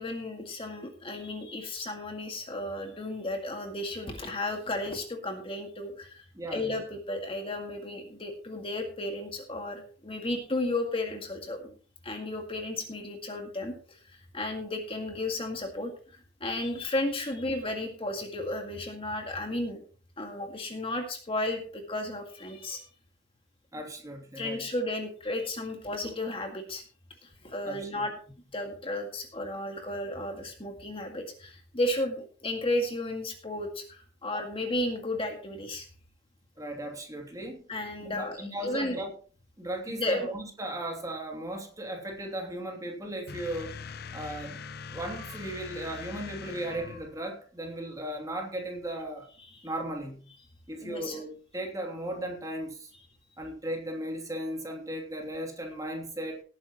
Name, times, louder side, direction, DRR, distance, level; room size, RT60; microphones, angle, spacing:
voice 1, 0.0-6.3 6.5-11.8 12.0-19.8 20.2-22.9 24.4-26.8 27.2-28.1 28.5-35.9 37.7-39.0 39.9-40.3 49.6-49.7 50.8-51.2, left 1 dB, 30° left, 3 dB, 2.0 m, -33 dB
voice 2, 6.3-6.7 23.7-24.7 27.6-28.1 36.6-37.6 38.0-39.1 39.6-43.7 44.1-44.6 44.9-49.3 49.6-50.3 50.7-52.9 53.4-56.4, right 1 dB, 15° right, 1 dB, 2.8 m, -36 dB
sound 1, 43.3-47.2, left 6 dB, 55° left, 0.6 m, -42 dB
18.5 x 9.6 x 3.0 m, 0.40 s
head